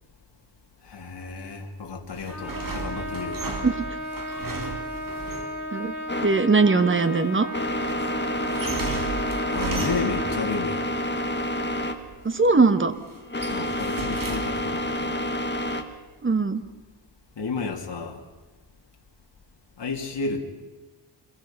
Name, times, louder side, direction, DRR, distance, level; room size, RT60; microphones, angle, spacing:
voice 1, 0.8-3.4 7.9-8.1 9.5-10.9 13.4-15.4 17.4-18.3 19.8-20.4, left 4 dB, 70° left, 1 dB, 2.9 m, -32 dB
sound 1, 2.1-5.6 8.4-10.4 11.9-12.5 12.9-14.8, right 4 dB, 45° right, 3.1 m, -35 dB
Trumpet, 2.3-10.4, equal, 5° right, 5.5 m, -34 dB
sound 2, 6.1-15.8, left 1 dB, 25° left, 1.6 m, -29 dB
voice 2, 6.2-7.5 12.2-12.9 16.2-16.6, right 3 dB, 25° right, 10 dB, 1.2 m, -20 dB
26.0 x 22.5 x 5.8 m, 1.3 s
wide cardioid pair, 165°, 44 cm